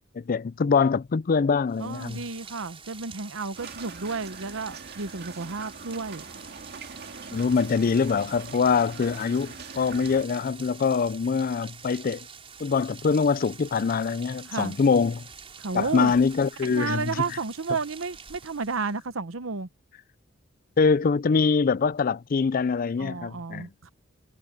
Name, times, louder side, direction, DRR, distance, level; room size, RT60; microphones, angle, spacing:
voice 1, 0.1-2.2 7.3-12.3 12.6-15.3 15.7-17.2 20.8-23.7, left 5 dB, 45° left, 0.4 m, -24 dB
Rain, 1.7-19.1, right 6 dB, 30° right, 4.9 m, -47 dB
voice 2, 1.8-6.2 14.5-14.8 15.6-16.1 16.6-19.7 23.0-23.9, right 4 dB, 80° right, 1.0 m, -32 dB
sound 1, 3.5-10.2, right 4 dB, 55° right, 2.4 m, -43 dB
head